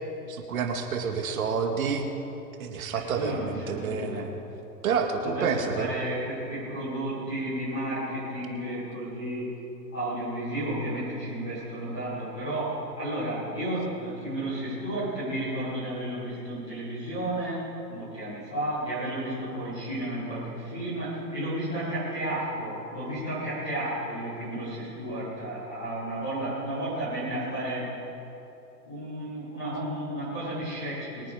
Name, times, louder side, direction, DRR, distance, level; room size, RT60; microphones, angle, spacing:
voice 1, 0.3-2.1 2.6-4.3 4.8-5.9, right 5 dB, 55° right, 3 dB, 2.3 m, -29 dB
voice 2, 2.9-4.2 5.2-9.6 9.9-27.9 28.9-31.3, right 1 dB, 5° left, -13 dB, 0.4 m, -32 dB
24.0 x 8.9 x 5.4 m, 3.0 s
figure-of-eight pair, 125°, 50 cm